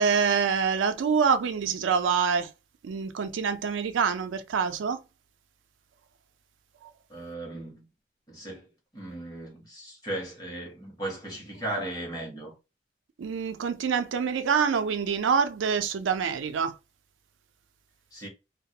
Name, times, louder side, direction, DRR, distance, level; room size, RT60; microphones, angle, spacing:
voice 1, 0.0-2.5 2.8-5.0 6.8-6.9 13.2-16.8, right 6 dB, 90° right, 0.4 m, -26 dB
voice 2, 7.1-7.9 8.3-12.5 18.1-18.3, right 1 dB, 20° left, 1.0 m, -37 dB
2.3 x 2.0 x 2.7 m
head